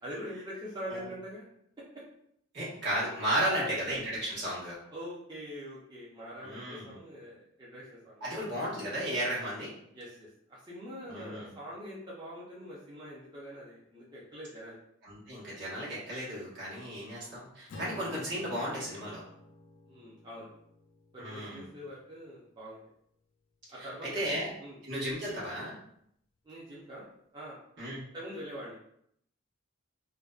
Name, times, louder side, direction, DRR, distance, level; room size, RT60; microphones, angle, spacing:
voice 1, 0.0-1.4 3.5-4.0 4.9-8.5 9.9-14.8 19.9-20.5 21.1-22.8 23.7-24.8 26.4-27.0 27.3-27.6 28.1-28.8, equal, 20° right, -8 dB, 0.5 m, -44 dB
voice 2, 2.5-4.8 6.4-7.0 8.2-9.7 11.1-11.5 15.0-19.2 21.2-21.7 24.1-24.5 24.8-25.7 27.8-28.0, right 1 dB, 65° right, -8 dB, 1.1 m, -34 dB
Acoustic guitar / Strum, 17.7-22.4, left 1 dB, 65° left, 0.4 m, -51 dB
2.5 x 2.1 x 2.3 m, 0.70 s
head